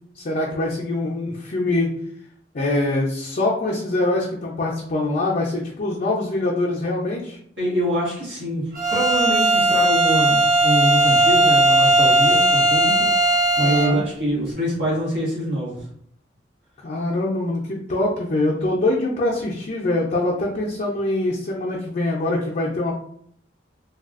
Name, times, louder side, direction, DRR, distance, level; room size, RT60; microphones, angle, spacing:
voice 1, 0.1-1.9 2.5-7.4 13.6-14.0 16.8-22.9, left 2 dB, 45° left, -3 dB, 0.5 m, -24 dB
voice 2, 7.6-8.6 8.9-15.8, equal, 85° right, -7 dB, 1.5 m, -24 dB
Bowed string instrument, 8.8-14.0, right 1 dB, 50° right, 0.8 m, -17 dB
3.3 x 2.3 x 2.4 m, 0.64 s
head